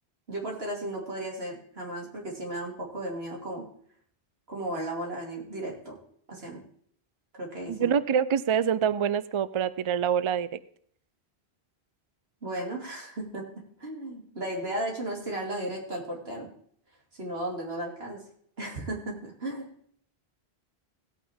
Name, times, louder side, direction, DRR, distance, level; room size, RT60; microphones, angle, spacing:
voice 1, 0.3-3.6 4.5-6.0 6.3-6.6 7.4-7.9 12.4-13.4 13.8-16.5 17.2-18.2 18.6-19.7, right 1 dB, 75° right, -1 dB, 2.9 m, -35 dB
voice 2, 7.7-10.6, right 8 dB, 50° right, 16 dB, 0.3 m, -26 dB
17.0 x 8.6 x 3.6 m, 0.63 s
omnidirectional pair, 1.1 m